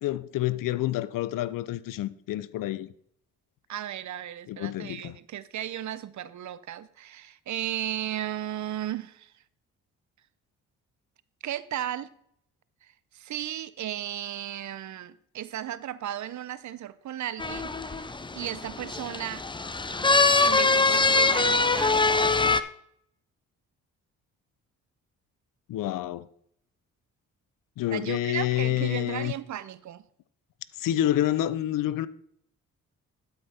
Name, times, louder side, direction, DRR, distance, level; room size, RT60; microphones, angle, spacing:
voice 1, 0.0-2.9 4.5-5.2 25.7-26.3 27.8-29.3 30.8-32.1, left 13 dB, 70° left, 0.6 m, -28 dB
voice 2, 3.7-9.4 11.4-12.1 12.8-19.4 20.4-22.4 27.9-30.0, right 11 dB, 55° right, 0.7 m, -35 dB
sound 1, 17.4-22.6, left 3 dB, 15° left, 0.6 m, -23 dB
12.0 x 5.3 x 4.3 m
supercardioid pair, 55°, 34 cm